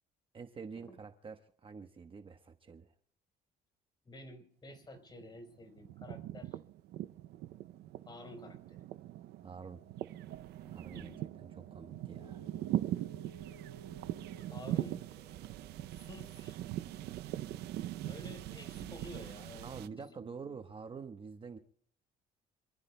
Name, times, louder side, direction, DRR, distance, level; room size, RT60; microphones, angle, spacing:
voice 1, 0.3-2.9 9.4-9.8 10.6-11.1 11.4-12.4 19.6-21.6, right 5 dB, 30° right, 6 dB, 1.1 m, -47 dB
voice 2, 4.0-6.6 8.1-8.8 10.9-11.2 14.5-15.0 15.9-16.6 18.1-19.7 20.0-20.1, left 1 dB, 25° left, 6 dB, 4.2 m, -50 dB
sound 1, 4.7-5.4 5.6-19.9, right 13 dB, 75° right, 0.6 m, -41 dB
sound 2, 10.6-20.6, left 3 dB, 45° left, 1.9 m, -61 dB
27.5 x 14.5 x 2.2 m, 0.63 s
cardioid pair, 110°, 17 cm